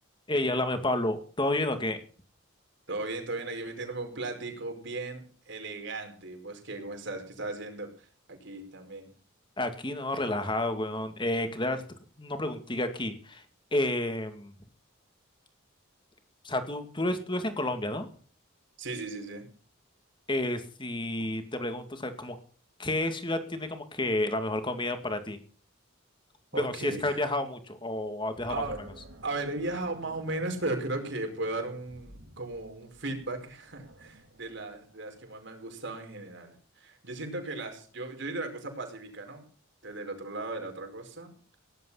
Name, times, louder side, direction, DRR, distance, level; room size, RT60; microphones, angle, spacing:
voice 1, 0.3-2.0 9.6-11.8 12.2-13.4 13.7-14.5 16.4-18.1 20.3-22.4 22.8-25.4 26.5-28.5, left 1 dB, 25° left, 8 dB, 2.2 m, -30 dB
voice 2, 2.9-9.1 18.8-19.5 26.5-27.2 28.5-28.8 29.2-39.5 39.8-41.6, right 2 dB, 60° right, 4 dB, 5.1 m, -36 dB
Animal, 28.4-35.5, right 1 dB, 85° right, 4.2 m, -53 dB
18.0 x 11.0 x 5.7 m, 0.43 s
head